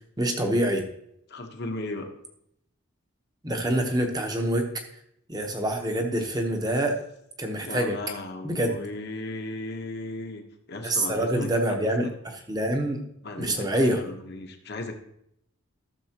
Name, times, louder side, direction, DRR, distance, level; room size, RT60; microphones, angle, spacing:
voice 1, 0.2-0.8 3.4-4.7 5.3-7.0 7.4-8.0 8.4-8.8 10.8-12.1 12.5-13.0 13.4-14.0, right 1 dB, 20° right, 4 dB, 1.0 m, -25 dB
voice 2, 1.3-2.1 7.6-12.1 13.2-14.9, left 2 dB, 50° left, 4 dB, 1.1 m, -36 dB
14.0 x 6.8 x 2.9 m, 0.75 s
head